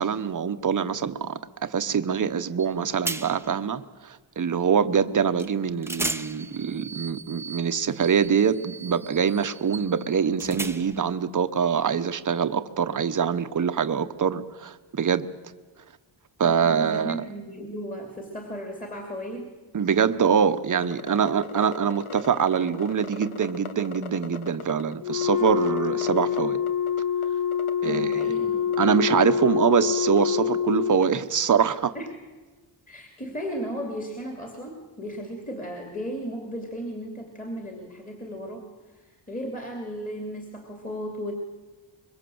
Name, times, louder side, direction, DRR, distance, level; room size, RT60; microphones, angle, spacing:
voice 1, 0.0-15.3 16.4-17.2 19.7-26.6 27.8-28.3 28.8-31.9, right 7 dB, 40° right, 10 dB, 1.0 m, -24 dB
sound 1, 2.6-2.7 3.0-3.6 5.4-5.5 5.8-11.1, right 2 dB, 5° right, 0.8 m, -36 dB
voice 2, 16.4-19.5 27.8-28.8 31.9-32.1 32.9-41.3, equal, 15° left, 2 dB, 2.9 m, -35 dB
sound 2, 20.8-24.9 25.2-26.4 26.7-27.3 27.5-28.2 28.7-28.8 29.1-29.3 29.7-29.8 30.2-30.3 31.0-31.1, left 6 dB, 90° left, 1.7 m, -39 dB
Wind instrument woodwind instrument, 25.0-31.1, left 8 dB, 50° left, 3.5 m, -26 dB
25.0 x 22.5 x 7.8 m, 1.3 s
wide cardioid pair, 160°, 49 cm